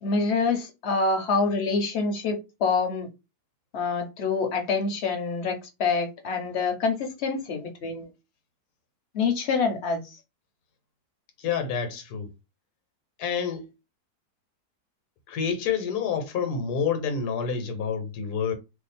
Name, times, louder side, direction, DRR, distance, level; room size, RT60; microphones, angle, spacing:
voice 1, 0.0-3.1 3.7-8.1 9.1-10.0, left 4 dB, 50° left, 0.9 m, -26 dB
voice 2, 11.4-12.3 13.2-13.7 15.3-18.5, left 6 dB, 75° left, 1.3 m, -28 dB
2.8 x 2.4 x 4.0 m
omnidirectional pair, 1.7 m